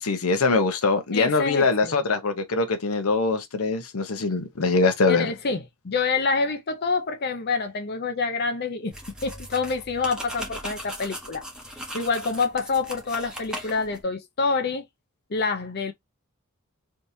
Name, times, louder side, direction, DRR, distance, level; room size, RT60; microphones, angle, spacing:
voice 1, 0.0-5.3, left 3 dB, 80° left, 0.8 m, -23 dB
voice 2, 1.1-2.0 5.1-8.9 9.2-11.4 11.9-14.8 15.3-15.9, left 4 dB, 50° left, 0.6 m, -27 dB
sound 1, 8.9-14.0, equal, 5° right, 0.9 m, -38 dB
3.5 x 2.9 x 2.6 m
head